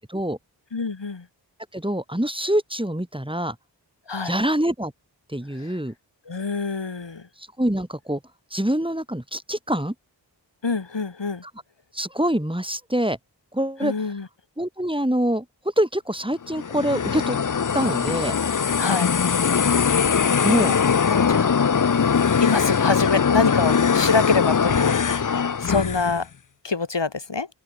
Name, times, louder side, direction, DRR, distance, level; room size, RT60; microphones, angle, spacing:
voice 1, 0.7-1.3 4.1-4.4 5.5-5.7 6.3-7.3 10.6-11.4 13.8-14.3 18.8-19.1 21.1-21.6 22.4-26.3 26.6-27.5, left 4 dB, 70° left, 3.1 m, -26 dB
voice 2, 1.7-3.6 4.2-4.9 5.3-5.9 7.4-8.2 8.5-9.9 11.9-13.2 13.5-13.9 14.6-15.5 15.8-17.4 17.7-18.4 20.4-20.8, right 1 dB, 10° right, 4.1 m, -25 dB
sound 1, 16.5-26.2, left 6 dB, 45° left, 0.7 m, -21 dB
open air
wide cardioid pair, 40°, 44 cm